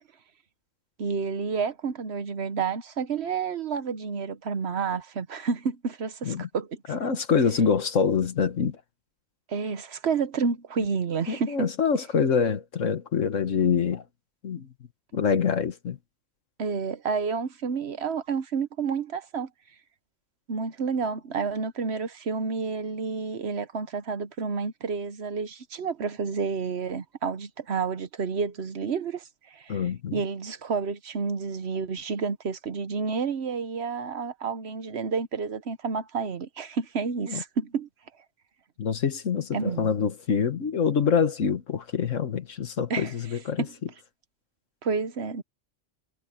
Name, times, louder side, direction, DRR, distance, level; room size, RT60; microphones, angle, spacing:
voice 1, 1.0-7.0 9.5-11.5 16.6-19.5 20.5-29.8 30.1-37.9 39.5-39.9 42.9-43.1 43.6-43.7 44.8-45.4, right 5 dB, 60° right, 1.2 m, -30 dB
voice 2, 6.9-8.8 11.3-14.0 14.4-14.7 15.1-16.0 29.7-30.2 37.3-37.4 38.8-43.7, left 6 dB, 80° left, 1.8 m, -25 dB
omnidirectional pair, 1.3 m